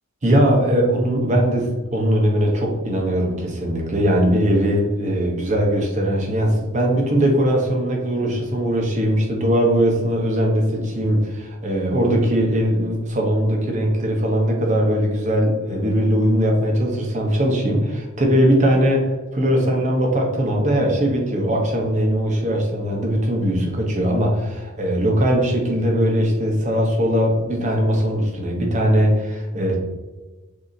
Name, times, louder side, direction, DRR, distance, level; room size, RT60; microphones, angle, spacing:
voice 1, 0.2-19.0 19.3-29.8, equal, 30° right, 0 dB, 0.8 m, -20 dB
6.5 x 2.7 x 2.6 m, 1.2 s
head